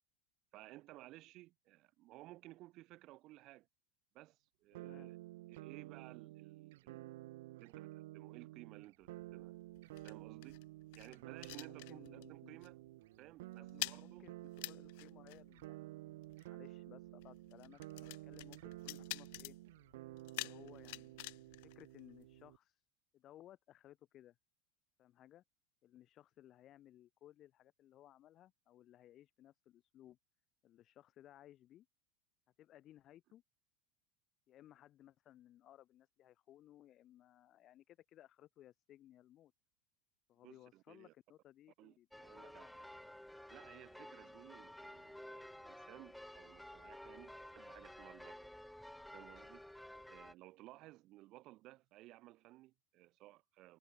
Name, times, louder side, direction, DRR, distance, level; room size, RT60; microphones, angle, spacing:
voice 1, 0.5-3.7 4.1-5.2 5.5-7.2 7.5-9.5 10.0-10.6 11.0-12.8 13.2-14.3 40.4-41.1 41.8-42.7 43.5-48.5 49.1-49.6 50.1-53.8, right 18 dB, 45° right, 2.8 m, -58 dB
voice 2, 4.7-5.1 11.6-12.6 13.6-14.3 14.7-19.6 20.3-22.8 23.1-24.4 25.0-25.4 25.8-30.2 30.6-31.9 32.6-33.4 34.5-39.5 40.3-43.0, left 12 dB, 40° left, 6.1 m, -61 dB
sound 1, 4.7-22.6, right 18 dB, 80° right, 0.7 m, -52 dB
sound 2, 9.0-12.4 12.6-12.9 13.2-22.6, left 25 dB, 70° left, 0.5 m, -49 dB
sound 3, 42.1-50.3, left 1 dB, ahead, 2.2 m, -53 dB
supercardioid pair, 135°, 0 cm